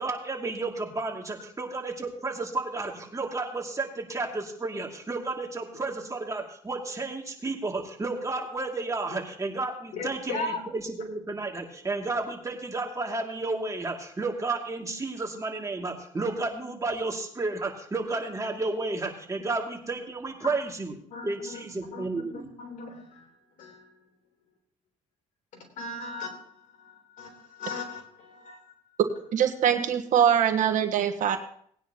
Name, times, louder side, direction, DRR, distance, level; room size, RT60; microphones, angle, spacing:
voice 1, 0.0-20.9 21.2-22.5, right 3 dB, 25° right, 1 dB, 2.5 m, -32 dB
voice 2, 9.9-10.6 20.4-20.5 21.1-21.6 21.9-24.0 25.5-28.7, left 3 dB, 70° left, 2 dB, 3.6 m, -38 dB
voice 3, 29.3-31.4, right 9 dB, 70° right, 6 dB, 1.3 m, -23 dB
19.0 x 9.8 x 2.9 m, 0.63 s
cardioid pair, 85°, 14 cm